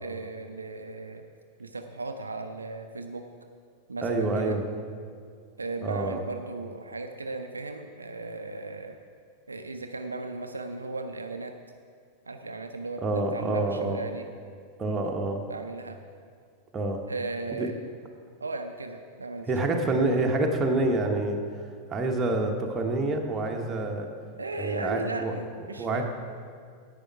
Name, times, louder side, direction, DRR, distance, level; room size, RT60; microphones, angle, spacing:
voice 1, 0.0-1.2 1.6-3.3 3.9-4.6 5.6-9.0 9.5-11.5 12.3-14.3 14.8-15.1 15.5-16.0 17.1-17.7 18.4-20.3 24.4-26.0, right 3 dB, 80° right, 6 dB, 0.5 m, -36 dB
voice 2, 4.0-4.6 5.8-6.2 13.0-14.0 14.8-15.4 16.7-17.0 17.6-17.7 19.5-21.4 21.9-24.1 24.6-25.3 25.8-26.0, right 2 dB, 20° right, 2 dB, 1.2 m, -27 dB
10.5 x 8.3 x 4.7 m, 2.2 s
figure-of-eight pair, 90°, 0 cm